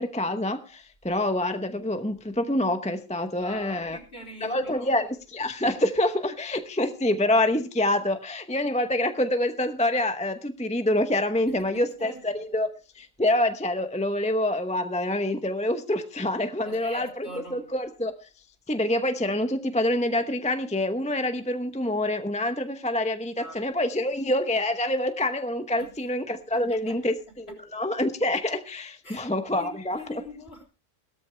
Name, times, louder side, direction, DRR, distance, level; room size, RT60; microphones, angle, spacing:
voice 1, 0.0-4.0 4.4-18.1 18.7-27.5 27.7-30.2, left 1 dB, 5° left, 8 dB, 0.8 m, -26 dB
voice 2, 3.4-5.0 11.5-12.2 16.6-17.7 23.4-23.6 25.8-25.9 26.5-27.0 27.3-27.6 29.0-29.3 29.6-29.7 30.0-30.6, left 1 dB, 50° left, 1 dB, 4.4 m, -43 dB
17.5 x 13.5 x 3.4 m, 0.32 s
omnidirectional pair, 1.4 m